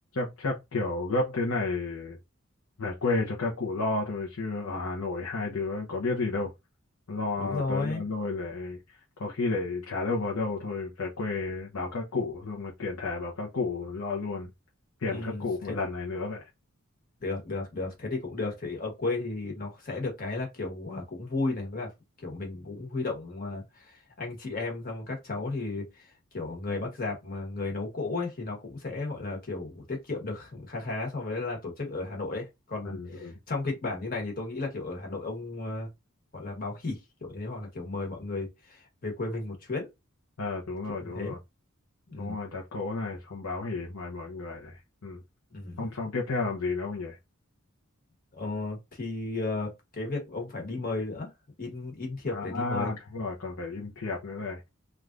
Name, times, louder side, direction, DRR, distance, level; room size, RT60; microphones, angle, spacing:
voice 1, 0.2-2.2 2.8-6.5 7.1-14.5 15.0-16.5 32.8-33.4 40.4-41.4 42.2-45.2 45.8-47.2 52.3-54.7, left 3 dB, 85° left, 0.7 m, -32 dB
voice 2, 7.4-8.0 15.1-15.8 17.2-21.9 22.2-35.9 36.3-39.9 40.9-41.3 42.1-42.4 45.5-45.9 48.3-51.3 51.6-52.9, left 3 dB, 45° left, 1.2 m, -34 dB
3.3 x 2.4 x 2.4 m
head